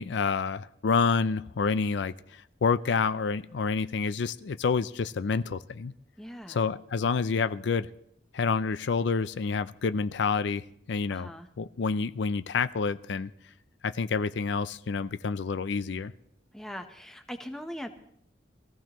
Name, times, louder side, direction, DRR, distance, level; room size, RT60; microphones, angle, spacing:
voice 1, 0.0-5.9 6.5-7.9 8.3-11.3 11.6-13.3 13.8-16.1, left 5 dB, 75° left, 13 dB, 0.4 m, -28 dB
voice 2, 6.2-6.6 11.1-11.5 16.5-17.9, equal, 5° left, 5 dB, 0.9 m, -40 dB
22.5 x 15.0 x 3.0 m, 0.73 s
head